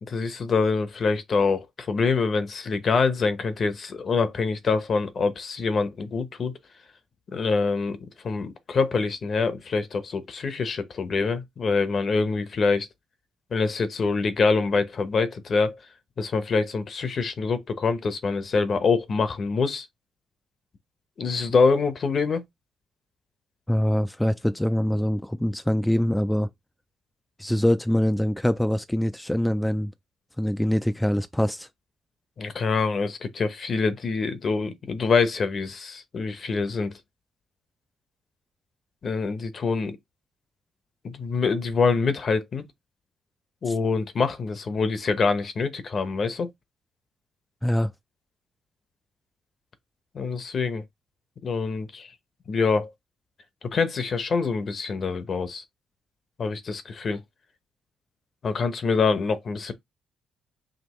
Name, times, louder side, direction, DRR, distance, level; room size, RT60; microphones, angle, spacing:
voice 1, 0.0-6.5 7.3-12.9 13.5-15.8 16.2-19.9 21.2-22.4 32.4-37.0 39.0-40.0 41.0-42.7 43.6-46.5 50.1-50.8 51.4-52.1 52.5-52.9 53.6-55.6 56.4-57.2 58.4-59.7, left 4 dB, 50° left, 0.9 m, -25 dB
voice 2, 23.7-26.5 27.4-29.9 30.4-31.7 43.7-43.8 47.6-47.9, equal, 5° left, 0.3 m, -24 dB
5.2 x 2.9 x 3.0 m
cardioid pair, 90°, 0 cm